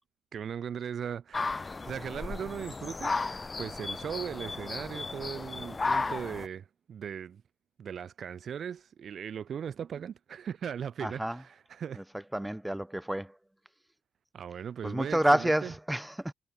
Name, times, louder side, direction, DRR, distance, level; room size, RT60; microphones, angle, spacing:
voice 1, 0.3-3.2 3.6-7.4 7.8-12.0 14.3-15.7, right 8 dB, 50° right, 5.9 m, -38 dB
sound 1, 1.3-6.5, left 3 dB, 25° left, 5.1 m, -34 dB
voice 2, 11.0-11.4 12.3-13.3 14.8-16.3, right 1 dB, 5° right, 7.3 m, -28 dB
hypercardioid pair, 55°, 0 cm